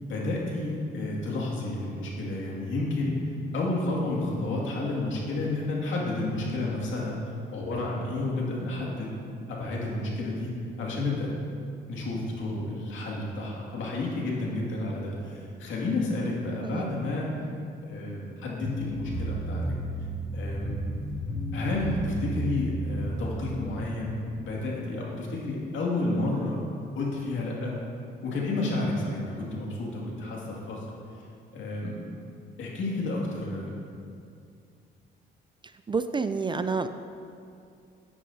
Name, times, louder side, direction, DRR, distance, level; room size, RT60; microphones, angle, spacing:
voice 1, 0.0-3.1 3.5-7.2 7.5-9.1 9.5-10.5 10.8-11.3 11.9-17.3 17.8-19.6 20.3-20.9 21.5-26.6 27.0-27.7 28.2-30.9 31.5-32.0 32.6-33.7, left 2 dB, 75° left, -3 dB, 2.2 m, -31 dB
voice 2, 16.6-16.9 35.9-36.9, right 4 dB, 25° right, 10 dB, 0.4 m, -28 dB
sound 1, 18.6-23.9, right 1 dB, 45° left, 2.5 m, -33 dB
12.0 x 9.6 x 2.8 m, 2.4 s
cardioid pair, 90°, 20 cm